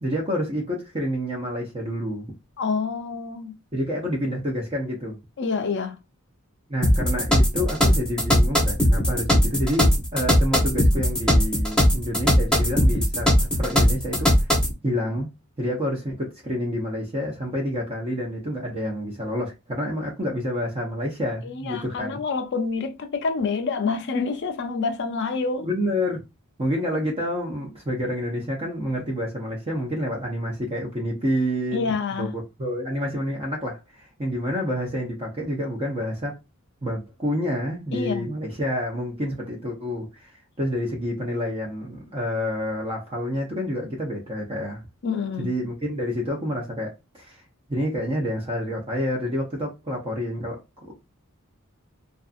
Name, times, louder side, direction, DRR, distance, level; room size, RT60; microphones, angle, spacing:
voice 1, 0.0-2.3 3.7-5.2 6.7-14.3 14.8-15.3 15.6-22.2 25.6-26.2 26.6-36.3 36.8-40.3 40.6-44.8 45.4-47.4 47.7-50.9, equal, 30° right, 0.6 m, -28 dB
voice 2, 2.6-3.5 5.4-6.0 21.4-25.7 31.7-32.3 37.9-38.3 45.0-45.5, left 4 dB, 55° left, 0.5 m, -27 dB
sound 1, 6.8-14.7, equal, 5° left, 0.8 m, -19 dB
2.5 x 2.4 x 2.4 m
head